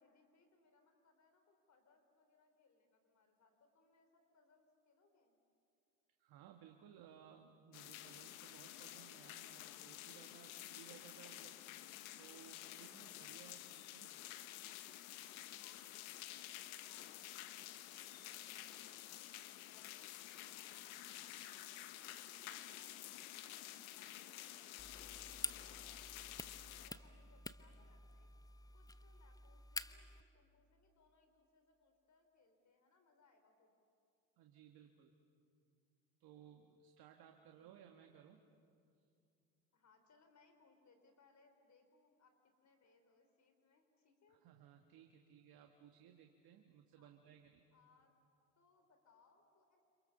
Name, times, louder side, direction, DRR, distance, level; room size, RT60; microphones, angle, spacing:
voice 1, 0.0-5.4 15.6-22.9 23.3-26.3 26.7-28.3 28.7-33.7 37.4-37.7 39.7-44.4 47.0-47.1 47.7-48.1 48.6-49.9, left 4 dB, 45° left, 6 dB, 4.3 m, -72 dB
voice 2, 6.2-14.2 34.4-35.1 36.2-38.4 44.3-47.6, right 9 dB, 60° right, 4 dB, 1.9 m, -61 dB
sound 1, 7.7-26.9, left 14 dB, 80° left, 1.2 m, -51 dB
sound 2, 24.8-30.2, left 2 dB, 10° left, 0.9 m, -49 dB
30.0 x 27.0 x 6.8 m, 2.5 s
hypercardioid pair, 70°, 40 cm